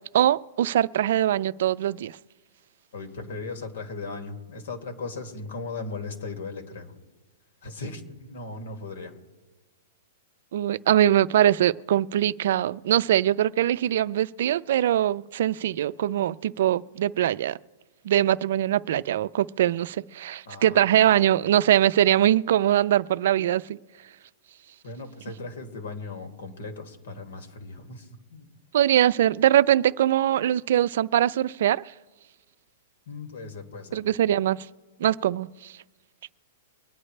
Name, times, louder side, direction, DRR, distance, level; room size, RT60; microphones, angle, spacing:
voice 1, 0.1-2.2 10.5-17.6 18.0-23.8 28.7-31.8 33.9-34.7 35.0-35.7, right 11 dB, 60° right, 0.4 m, -22 dB
voice 2, 2.9-6.9 7.6-9.1 20.5-20.8 24.8-28.5 33.1-34.2, left 3 dB, 80° left, 2.4 m, -37 dB
23.5 x 10.0 x 3.3 m
supercardioid pair, 170°, 0 cm